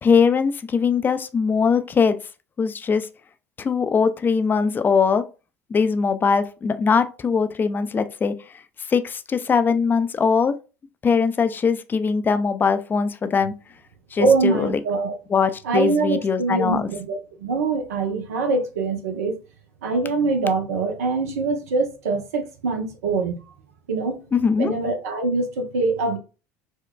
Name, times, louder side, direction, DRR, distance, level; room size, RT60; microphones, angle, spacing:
voice 1, 0.0-2.2 2.6-3.1 3.6-5.2 5.7-8.3 8.9-10.6 11.0-13.5 14.1-14.8 15.3-16.8 24.3-24.7, left 5 dB, 25° left, 0.4 m, -21 dB
voice 2, 14.2-15.2 15.6-19.4 19.8-23.4 23.9-24.2 24.6-26.2, right 3 dB, 80° right, 0.7 m, -23 dB
4.4 x 2.2 x 2.2 m
hypercardioid pair, 65°, 8 cm